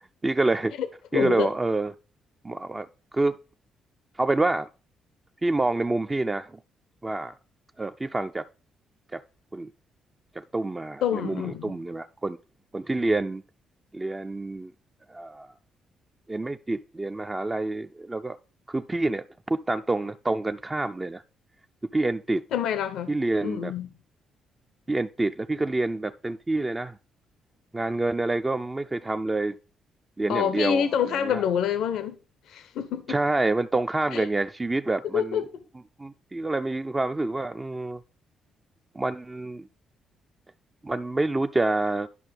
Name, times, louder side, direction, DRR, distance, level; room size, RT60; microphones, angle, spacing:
voice 1, 0.2-0.7 1.1-1.9 2.4-2.9 3.1-3.4 4.2-4.7 5.4-6.6 7.0-7.3 7.8-8.5 9.1-9.2 9.5-9.7 10.4-12.4 12.7-13.4 13.9-14.7 15.1-15.5 16.3-18.4 18.7-21.2 21.9-22.4 23.1-23.7 24.9-27.0 27.7-29.5 30.2-31.4 33.1-35.4 36.0-38.0 38.9-39.7 40.8-42.1, right 2 dB, 20° right, 0.3 m, -27 dB
voice 2, 1.1-1.5 11.0-11.7 22.5-23.1 23.4-23.9 30.3-32.2 32.5-33.2 34.1-34.3 35.1-35.5, left 8 dB, 80° left, 0.6 m, -27 dB
11.0 x 5.4 x 3.3 m
cardioid pair, 90°, 0 cm